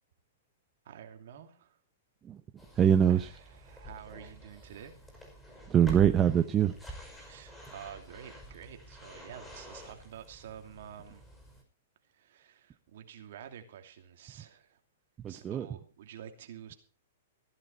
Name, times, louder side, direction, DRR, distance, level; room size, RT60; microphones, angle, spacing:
voice 1, 0.8-1.8 3.1-5.0 7.2-11.2 12.1-14.8 15.3-16.7, right 9 dB, 65° right, 2.8 m, -49 dB
sound 1, 2.6-11.6, right 1 dB, 10° left, 5.3 m, -48 dB
voice 2, 2.8-3.3 5.7-6.7 15.2-15.7, right 9 dB, 20° right, 0.7 m, -23 dB
15.5 x 11.0 x 4.4 m
hypercardioid pair, 140°, 0 cm